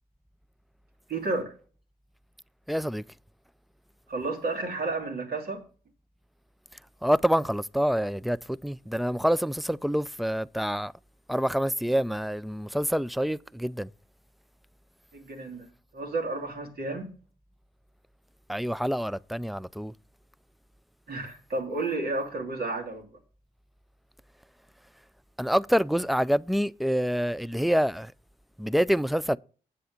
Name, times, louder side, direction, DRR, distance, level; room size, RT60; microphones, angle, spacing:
voice 1, 1.1-1.5 4.1-5.6 15.1-15.7 15.9-17.1 21.1-23.1, right 3 dB, 65° right, 2.9 m, -31 dB
voice 2, 2.7-3.0 7.0-10.9 11.3-13.9 18.5-19.9 25.4-28.1 28.6-29.4, equal, ahead, 0.4 m, -26 dB
8.4 x 7.7 x 5.1 m
supercardioid pair, 50°, 17 cm